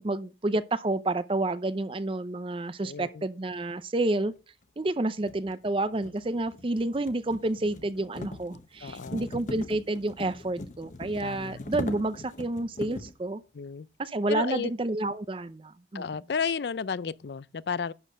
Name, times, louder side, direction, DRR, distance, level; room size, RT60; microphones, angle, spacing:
voice 1, 0.0-4.3 4.8-13.4 14.0-16.0, right 2 dB, 30° right, 0.5 m, -29 dB
voice 2, 2.8-3.3 8.8-9.3 11.2-11.6 13.5-13.9 14.3-14.7 15.9-17.9, left 6 dB, 70° left, 0.5 m, -33 dB
sound 1, 4.4-4.5 5.2-13.2, left 1 dB, 45° left, 1.1 m, -41 dB
11.0 x 4.2 x 6.6 m
head